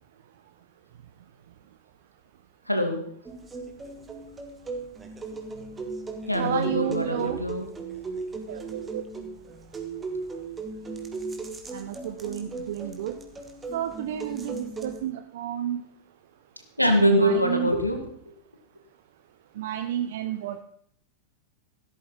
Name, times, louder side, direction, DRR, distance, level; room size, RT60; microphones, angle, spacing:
voice 1, 2.7-3.0 6.3-7.6 16.8-18.0, equal, 90° left, 5 dB, 2.4 m, -23 dB
sound 1, 3.3-15.0, right 3 dB, 15° right, 2.5 m, -37 dB
voice 2, 6.4-7.4 8.5-9.0 11.7-13.2 13.7-15.8 17.2-17.7 19.5-20.6, right 11 dB, 55° right, 8 dB, 0.9 m, -31 dB
16.5 x 13.0 x 4.1 m, 0.64 s
figure-of-eight pair, 90°, 0 cm